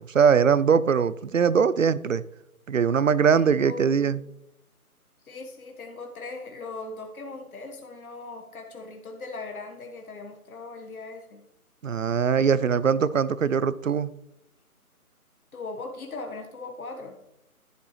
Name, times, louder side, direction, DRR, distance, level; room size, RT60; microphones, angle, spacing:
voice 1, 0.0-2.2 2.7-4.2 11.8-14.1, right 6 dB, 60° right, 0.5 m, -21 dB
voice 2, 3.3-4.2 5.2-11.4 15.5-17.2, left 3 dB, 70° left, 1.4 m, -39 dB
11.0 x 7.5 x 3.1 m
hypercardioid pair, 180°, 44 cm